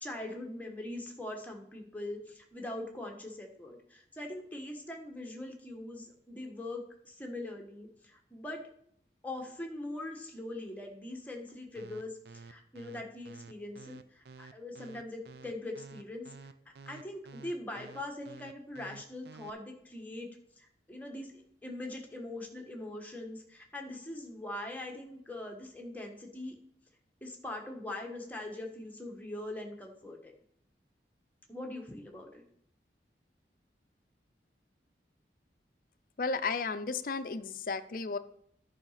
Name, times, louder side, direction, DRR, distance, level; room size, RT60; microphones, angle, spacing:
voice 1, 0.0-8.6 9.2-16.5 16.9-20.3 20.6-26.5 27.2-30.3 31.5-32.4, left 1 dB, 10° left, 1 dB, 1.3 m, -42 dB
sound 1, 11.8-19.5, right 4 dB, 65° right, 0.5 m, -50 dB
voice 2, 36.2-38.2, left 4 dB, 50° left, 12 dB, 0.5 m, -33 dB
10.5 x 4.9 x 5.7 m, 0.67 s
head